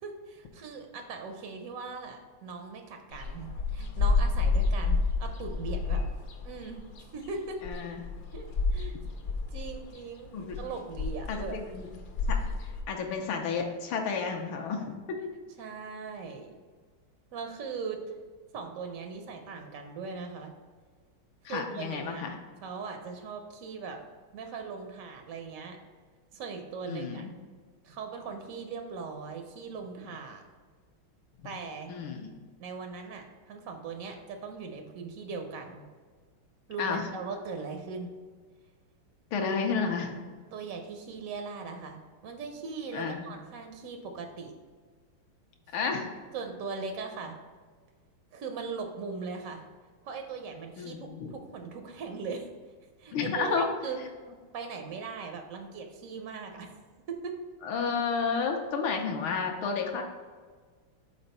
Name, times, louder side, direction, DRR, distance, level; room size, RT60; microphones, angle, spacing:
voice 1, 0.0-6.1 6.4-7.9 8.3-9.0 9.5-11.6 15.6-16.5 17.3-18.1 18.5-20.5 21.4-22.3 22.6-24.0 24.3-25.8 26.3-27.3 27.8-30.4 31.4-31.9 32.6-35.8 36.7-38.1 40.5-44.5 46.3-47.4 48.3-49.6 50.0-51.0 51.3-52.5 53.0-54.0 54.3-56.7 57.1-57.3, right 4 dB, 80° right, 4 dB, 0.7 m, -39 dB
sound 1, 3.1-12.8, left 4 dB, 60° left, 0.9 m, -30 dB
voice 2, 7.6-8.0 10.3-10.6 11.3-11.9 12.3-12.4 12.9-15.0 21.4-22.3 26.9-27.3 31.9-32.3 36.8-37.0 39.3-40.2 42.9-43.2 45.7-46.1 50.8-51.3 53.1-53.7 57.6-60.0, left 5 dB, 80° left, 2 dB, 1.5 m, -31 dB
5.0 x 4.3 x 5.4 m, 1.5 s
omnidirectional pair, 2.3 m